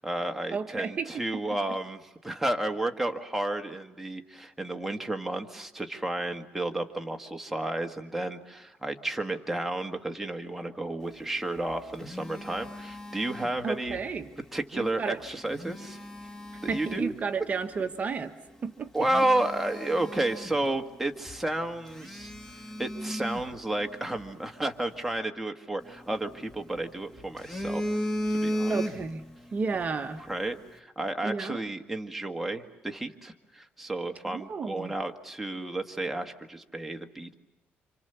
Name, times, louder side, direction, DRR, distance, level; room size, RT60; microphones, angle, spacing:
voice 1, 0.0-14.0 14.5-16.0 16.6-17.1 18.9-22.3 22.8-27.8 28.4-28.8 30.3-37.3, right 1 dB, 5° right, 3 dB, 1.8 m, -32 dB
voice 2, 0.5-1.2 13.6-14.3 14.7-15.2 16.7-18.3 18.6-18.9 28.7-29.2 29.5-30.2 31.2-31.6 34.3-34.9, right 5 dB, 35° right, 6 dB, 1.2 m, -32 dB
Telephone, 11.4-14.0 15.3-17.2 17.8-18.0 18.5-18.6 18.9-21.0 21.3-21.4 21.9-24.3 25.8-26.8 27.2-29.3 29.6-29.8, equal, 10° left, 2.5 m, -35 dB
29.5 x 26.5 x 7.0 m, 1.0 s
cardioid pair, 125°, 4 cm